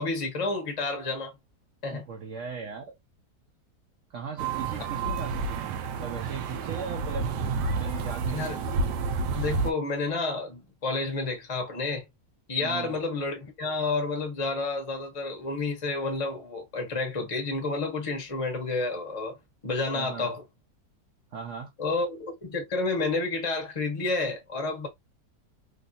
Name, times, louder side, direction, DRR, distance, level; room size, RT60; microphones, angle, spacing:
voice 1, 0.0-1.3 1.8-2.1 8.3-8.6 9.3-12.0 12.5-19.4 19.6-20.4 21.8-24.9, left 3 dB, 25° left, 0.8 m, -30 dB
voice 2, 1.9-2.9 4.1-7.3 7.8-8.4 12.6-13.0 19.9-20.3 21.3-21.7, right 6 dB, 60° right, 0.8 m, -38 dB
sound 1, 4.4-9.7, right 4 dB, 80° right, 1.2 m, -30 dB
3.1 x 2.7 x 2.6 m
omnidirectional pair, 1.8 m